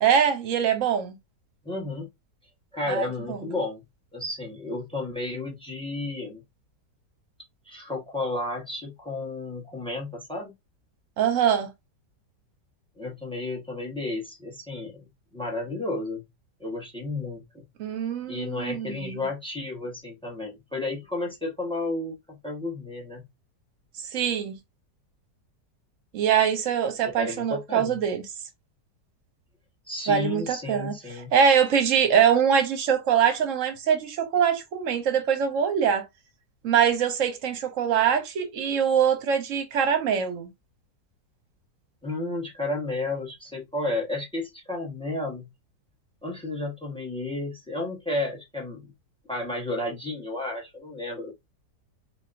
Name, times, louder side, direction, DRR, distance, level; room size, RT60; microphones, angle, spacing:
voice 1, 0.0-1.2 2.9-3.5 11.2-11.7 17.8-19.3 24.1-24.6 26.1-28.2 30.1-36.0 36.6-40.5, right 8 dB, 55° right, 1.0 m, -23 dB
voice 2, 1.6-2.1 2.7-3.8 4.1-6.4 7.7-10.5 13.0-15.1 15.3-16.2 16.6-17.6 18.3-23.3 27.2-28.0 29.9-31.3 42.0-45.5 46.2-48.9 49.3-51.3, left 2 dB, 5° left, 0.9 m, -32 dB
4.1 x 2.8 x 2.6 m
omnidirectional pair, 1.8 m